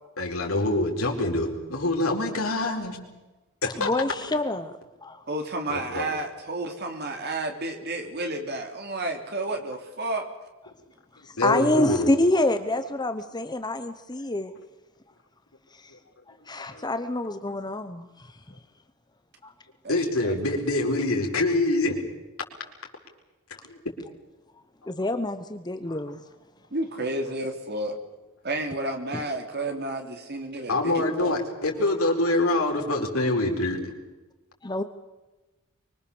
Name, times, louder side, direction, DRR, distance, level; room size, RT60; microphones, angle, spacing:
voice 1, 0.2-3.0 3.6-3.9 5.7-6.1 11.4-12.1 16.7-16.8 17.5-17.6 19.9-22.0 25.9-26.0 30.7-33.9, left 2 dB, 75° left, 1 dB, 4.6 m, -25 dB
voice 2, 3.8-4.7 5.0-5.2 11.2-14.5 15.7-15.9 16.3-18.3 19.4-19.5 24.9-26.2 34.6-34.8, left 1 dB, 20° left, 9 dB, 0.9 m, -27 dB
voice 3, 5.3-10.3 19.8-20.4 26.7-28.0 28.4-31.4, right 2 dB, 50° right, 4 dB, 3.3 m, -31 dB
24.5 x 23.5 x 7.2 m, 1.1 s
head